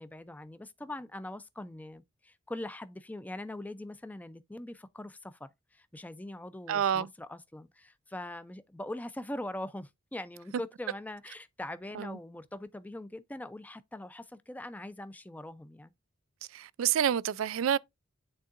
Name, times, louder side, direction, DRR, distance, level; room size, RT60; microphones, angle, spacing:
voice 1, 0.0-15.9, left 1 dB, 10° left, 0.4 m, -42 dB
voice 2, 6.7-7.1 12.0-12.1 16.5-17.8, right 9 dB, 80° right, 0.4 m, -28 dB
11.0 x 3.7 x 2.5 m
head